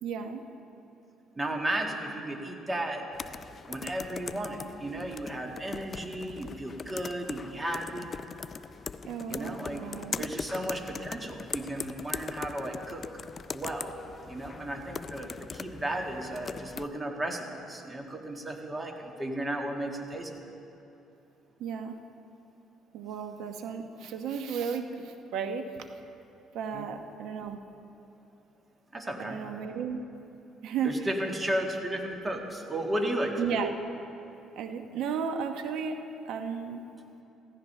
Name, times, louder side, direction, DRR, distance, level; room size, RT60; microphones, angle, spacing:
voice 1, 0.0-0.4 9.0-10.2 21.6-22.0 22.9-25.9 26.5-27.6 29.2-30.0 30.6-30.9 33.4-33.7 34.6-36.0 36.2-36.8, right 6 dB, 75° right, 6 dB, 1.0 m, -34 dB
voice 2, 1.4-3.1 3.7-8.1 9.3-9.9 10.2-13.0 13.5-13.9 14.3-20.5 26.7-26.9 28.9-29.4 30.8-33.6, right 1 dB, 20° right, 2 dB, 1.8 m, -34 dB
sound 1, 3.1-16.9, left 5 dB, 40° left, 0.4 m, -40 dB
15.5 x 15.5 x 3.3 m, 2.8 s
supercardioid pair, 85°, 0 cm